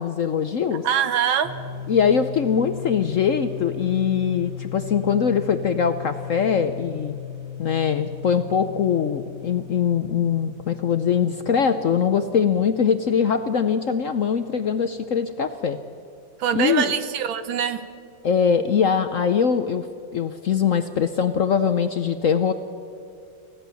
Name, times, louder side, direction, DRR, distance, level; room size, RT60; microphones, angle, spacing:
voice 1, 0.0-0.8 1.9-7.2 7.6-15.8 16.5-16.9 18.2-19.9 20.1-22.5, left 7 dB, 60° left, 9 dB, 0.8 m, -22 dB
voice 2, 0.8-1.5 16.4-17.8, right 8 dB, 90° right, 11 dB, 1.9 m, -23 dB
sound 1, 1.4-14.9, left 8 dB, 15° right, 3.1 m, -37 dB
24.5 x 16.5 x 7.0 m, 2.4 s
omnidirectional pair, 2.1 m